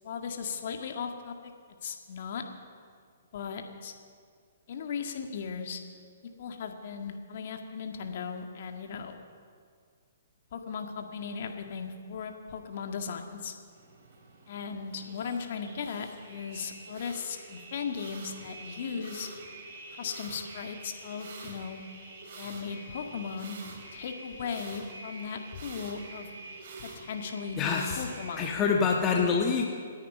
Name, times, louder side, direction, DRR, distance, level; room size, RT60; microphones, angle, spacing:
voice 1, 0.0-1.5 1.8-2.4 3.3-3.9 4.7-5.8 6.4-9.2 10.5-13.5 14.5-19.3 19.9-21.8 22.4-23.6 23.9-26.3 26.8-28.5, left 6 dB, 55° left, 5 dB, 1.9 m, -37 dB
sound 1, 13.7-28.5, right 2 dB, 50° right, 3.8 m, -46 dB
voice 2, 27.6-28.0 28.4-29.6, left 5 dB, 25° left, 0 dB, 1.4 m, -26 dB
28.0 x 9.3 x 5.5 m, 2.1 s
hypercardioid pair, 130°, 0 cm